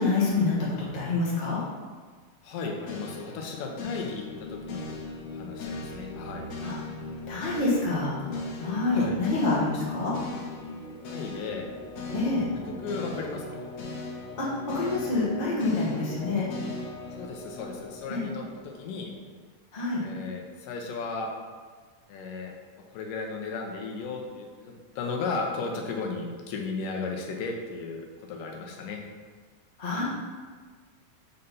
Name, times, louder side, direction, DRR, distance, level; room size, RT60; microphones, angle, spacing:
voice 1, 0.0-1.6 6.6-6.7 7.3-8.1 8.6-10.1 12.1-12.4 14.4-16.5 18.1-18.3 19.7-20.0 29.8-30.0, left 3 dB, 50° left, -6 dB, 0.5 m, -27 dB
voice 2, 2.4-4.9 5.3-6.4 8.9-9.2 11.1-11.7 12.1-12.2 12.7-13.6 17.1-19.1 20.0-21.3 22.1-22.5 22.9-29.0, left 4 dB, 85° left, 1 dB, 2.5 m, -35 dB
sound 1, 2.9-19.1, left 2 dB, 70° left, 2.0 m, -39 dB
5.4 x 4.2 x 5.4 m, 1.5 s
omnidirectional pair, 3.7 m